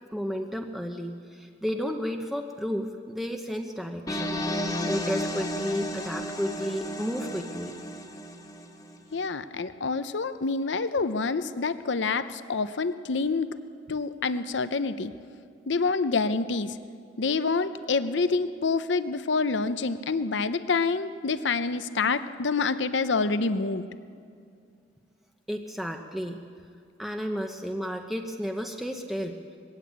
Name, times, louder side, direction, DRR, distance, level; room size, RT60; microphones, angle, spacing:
voice 1, 0.1-4.4 4.8-7.7 25.5-26.5 27.0-29.4, equal, ahead, 3 dB, 0.8 m, -32 dB
sound 1, 4.1-9.0, equal, 20° left, 1.5 m, -33 dB
voice 2, 9.1-13.5 13.9-15.1 15.7-16.8 17.2-23.9, left 4 dB, 70° left, 12 dB, 0.7 m, -27 dB
21.0 x 16.5 x 8.7 m, 2.3 s
head